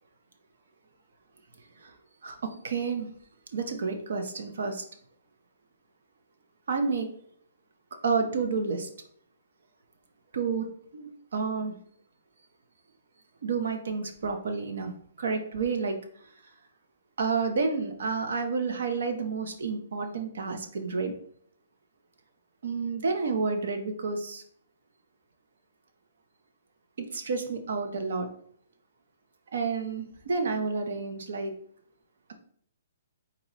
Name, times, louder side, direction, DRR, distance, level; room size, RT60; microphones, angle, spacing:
voice 1, 2.6-3.1 3.5-4.8 6.7-7.1 8.0-8.9 10.3-10.7 10.9-11.7 13.4-14.9 15.2-16.0 17.2-21.1 22.6-24.4 27.1-28.3 29.5-31.5, right 4 dB, 70° right, 6 dB, 0.8 m, -30 dB
4.1 x 3.0 x 4.0 m, 0.62 s
hypercardioid pair, 170°, 0 cm